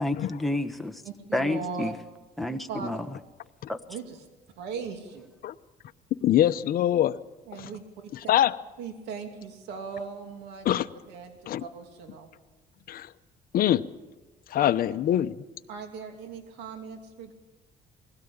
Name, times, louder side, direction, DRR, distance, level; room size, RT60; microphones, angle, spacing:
voice 1, 0.0-1.0 1.3-1.9 2.4-3.1 3.7-3.8, left 1 dB, ahead, 1.3 m, -29 dB
voice 2, 1.0-1.9 2.7-3.0 3.9-4.2 4.6-5.3 7.5-7.8 8.8-10.7 11.1-12.3 14.6-14.7 15.7-17.3, right 5 dB, 85° right, 2.8 m, -38 dB
voice 3, 6.2-7.2 8.3-8.5 10.6-10.9 11.5-11.6 12.9-13.1 13.5-13.8 14.5-15.3, left 12 dB, 60° left, 0.8 m, -23 dB
21.0 x 16.5 x 8.8 m
cardioid pair, 110°, 17 cm